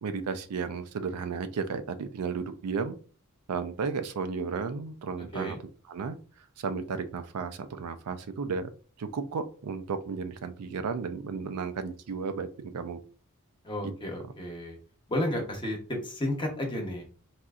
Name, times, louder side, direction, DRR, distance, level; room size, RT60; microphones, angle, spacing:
voice 1, 0.0-2.9 3.5-5.6 5.9-6.2 6.6-8.7 9.0-13.0 13.8-13.9, right 5 dB, 85° right, 10 dB, 0.4 m, -33 dB
voice 2, 13.6-14.8 15.1-17.0, left 1 dB, 20° left, 1 dB, 0.8 m, -32 dB
4.1 x 2.5 x 2.4 m, 0.39 s
head